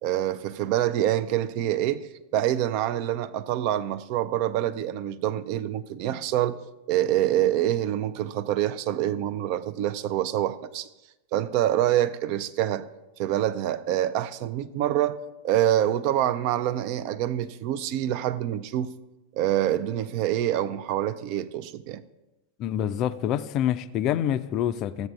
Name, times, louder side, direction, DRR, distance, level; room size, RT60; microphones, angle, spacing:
voice 1, 0.0-6.6 6.9-10.9 11.3-12.9 13.2-15.2 15.4-18.9 19.3-22.0, right 12 dB, 45° right, 0.4 m, -26 dB
voice 2, 22.6-25.1, left 10 dB, 35° left, 0.4 m, -26 dB
15.0 x 8.0 x 2.3 m
figure-of-eight pair, 90°, 0 cm